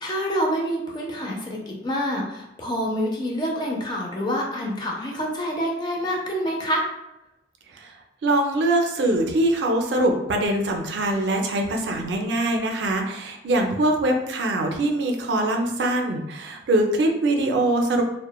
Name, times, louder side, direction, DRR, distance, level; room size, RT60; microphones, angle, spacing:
voice 1, 0.0-6.9, equal, 25° left, -1 dB, 0.4 m, -27 dB
voice 2, 8.2-18.0, right 1 dB, 70° right, 3 dB, 0.4 m, -23 dB
2.9 x 2.1 x 2.2 m, 0.91 s
head